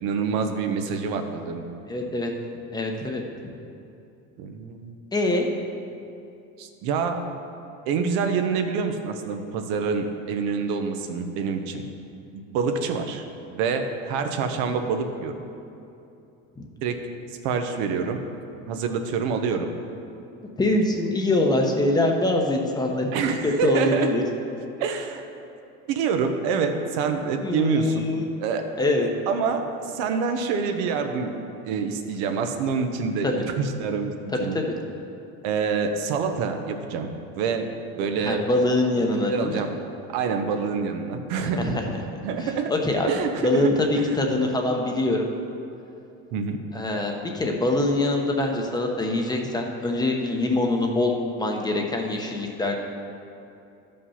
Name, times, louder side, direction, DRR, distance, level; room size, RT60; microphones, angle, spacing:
voice 1, 0.0-1.6 4.4-4.9 6.6-7.2 7.9-11.8 12.3-13.2 13.5-15.3 16.8-17.0 17.4-18.2 18.7-19.7 23.1-24.1 24.8-25.2 25.9-28.1 28.4-28.6 29.3-31.3 31.6-34.1 34.4-34.6 35.4-37.1 37.4-38.4 39.3-39.8 40.1-41.7 42.2-42.7 43.1-44.1 46.3-46.6, right 5 dB, 80° right, 6 dB, 1.0 m, -26 dB
voice 2, 1.9-2.3 2.7-3.5 5.1-5.5 16.6-16.7 20.6-24.2 27.4-28.3 28.8-29.1 33.2-33.3 34.3-34.6 38.2-39.6 41.4-42.0 42.4-43.1 43.4-45.3 46.7-51.1 51.4-52.8, left 2 dB, 15° left, 2 dB, 0.9 m, -24 dB
12.5 x 5.4 x 5.7 m, 2.7 s
cardioid pair, 140°, 30 cm